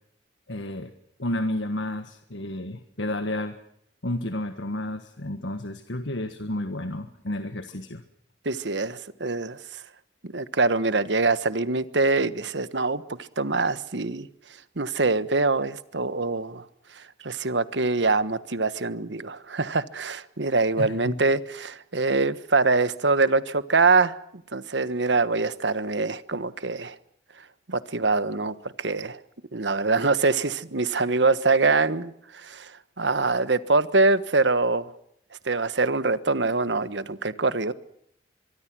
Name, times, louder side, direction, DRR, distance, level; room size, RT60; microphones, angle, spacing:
voice 1, 0.5-0.9 1.2-3.6 4.0-8.0 20.8-21.2, left 1 dB, 90° left, 1.6 m, -31 dB
voice 2, 8.4-9.8 10.2-14.3 14.8-16.6 17.0-24.2 24.5-26.9 27.7-29.2 29.5-34.9 35.4-37.7, right 3 dB, 80° right, 1.3 m, -24 dB
24.0 x 24.0 x 6.2 m
head